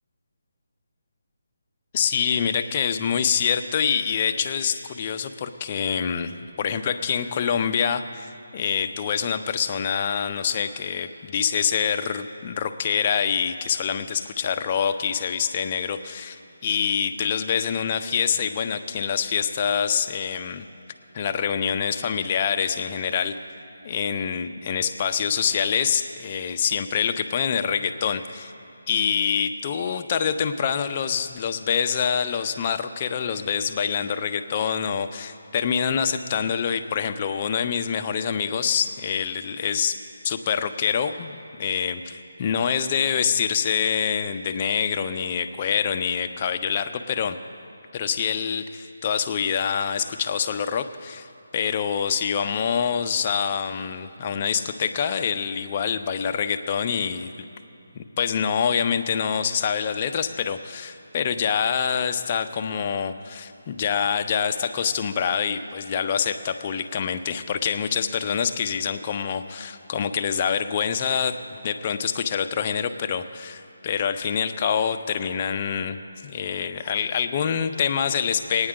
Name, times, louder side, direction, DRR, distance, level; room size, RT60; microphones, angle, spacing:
voice 1, 1.9-6.3 6.6-20.7 21.1-23.4 23.8-28.5 28.9-40.0 40.2-47.4 47.9-51.3 51.5-57.3 57.9-71.4 71.6-76.0 76.2-78.7, left 7 dB, 30° left, 8 dB, 0.5 m, -25 dB
20.0 x 9.6 x 3.7 m, 2.8 s
figure-of-eight pair, 160°, 0 cm